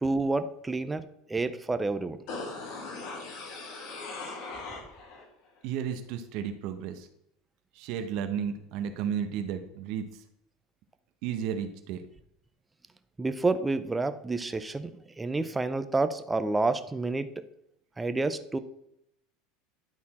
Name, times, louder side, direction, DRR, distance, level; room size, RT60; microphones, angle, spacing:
voice 1, 0.0-2.2 13.2-17.4 18.0-18.6, right 3 dB, 10° right, 10 dB, 0.5 m, -29 dB
sound 1, 2.3-5.3 5.6-5.7, left 3 dB, 60° left, 1.9 m, -39 dB
voice 2, 5.6-7.1 7.7-10.2 11.2-12.0, right 8 dB, 65° right, 7 dB, 0.8 m, -33 dB
10.5 x 4.1 x 4.2 m, 0.78 s
supercardioid pair, 125°, 0 cm